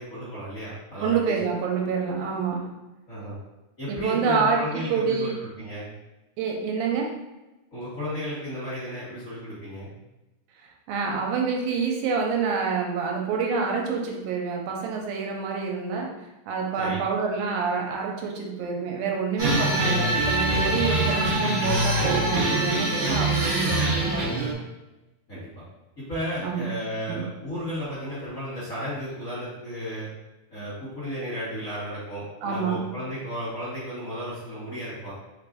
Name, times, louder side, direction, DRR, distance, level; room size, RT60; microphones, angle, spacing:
voice 1, 0.0-1.3 3.1-3.4 3.8-5.9 7.7-9.9 16.8-17.0 23.0-23.3 25.3-25.6 26.0-30.1 30.5-35.1, equal, 45° left, -11 dB, 1.0 m, -34 dB
voice 2, 1.0-2.7 3.9-4.6 4.9-5.4 6.4-7.2 10.9-24.5 26.4-26.7 27.1-27.2 32.4-32.9, right 5 dB, 85° right, 0 dB, 2.1 m, -27 dB
sound 1, 19.4-24.5, right 1 dB, 55° right, 1.1 m, -24 dB
4.8 x 3.4 x 2.5 m, 1.0 s
omnidirectional pair, 3.6 m